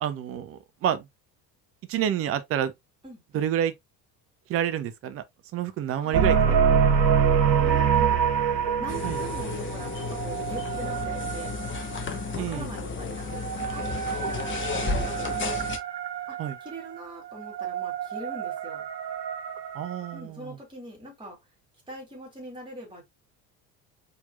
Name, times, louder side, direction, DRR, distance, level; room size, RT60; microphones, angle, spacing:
voice 1, 0.0-1.1 1.9-2.7 3.3-3.7 4.5-5.2 5.5-6.9 9.0-9.2 12.4-12.7 16.4-16.6 19.7-20.6, right 10 dB, 30° right, 0.6 m, -29 dB
voice 2, 3.0-3.4 5.9-6.9 7.6-8.2 8.8-11.6 12.3-14.5 14.9-15.6 16.3-18.9 20.1-21.4 21.9-23.0, right 1 dB, 10° right, 2.8 m, -42 dB
sound 1, 6.1-12.3 13.1-20.2, right 7 dB, 90° right, 0.6 m, -26 dB
sound 2, 8.9-15.8, left 4 dB, 25° left, 0.9 m, -33 dB
4.3 x 3.9 x 2.3 m
figure-of-eight pair, 60°, 50 cm